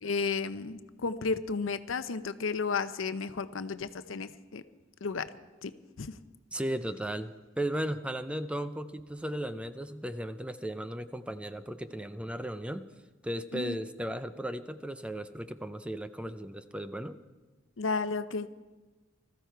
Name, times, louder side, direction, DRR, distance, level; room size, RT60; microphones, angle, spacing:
voice 1, 0.0-4.6 5.0-5.3 5.6-5.7 6.0-6.2 13.5-13.8 17.8-18.5, left 4 dB, 90° left, 12 dB, 0.7 m, -33 dB
voice 2, 6.5-7.3 7.6-12.8 13.2-17.2, right 1 dB, 5° right, 11 dB, 0.5 m, -36 dB
20.0 x 14.0 x 4.6 m, 1.2 s
head